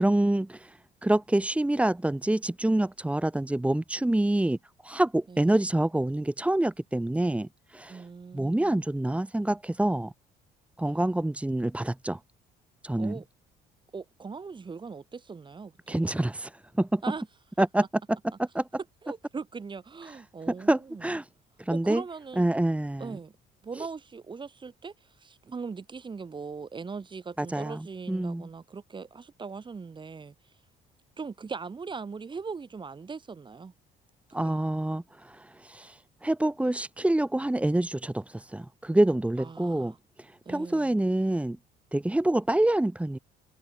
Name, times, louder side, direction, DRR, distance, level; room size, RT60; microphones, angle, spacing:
voice 1, 0.0-4.6 4.8-8.1 8.3-10.1 10.8-12.2 12.8-13.2 15.9-17.0 17.6-18.7 20.1-20.2 20.7-21.3 21.6-22.0 22.4-23.2 23.8-23.9 27.4-28.5 34.3-41.6 41.9-43.2, right 1 dB, 5° right, 3.0 m, -27 dB
voice 2, 7.9-8.8 10.8-11.0 13.0-13.2 13.9-16.0 17.0-17.2 19.0-21.1 21.7-22.5 23.0-23.3 23.6-30.3 31.2-33.7 34.3-34.5 39.4-40.0 40.5-40.9, right 5 dB, 30° right, 7.5 m, -40 dB
cardioid pair, 110°, 17 cm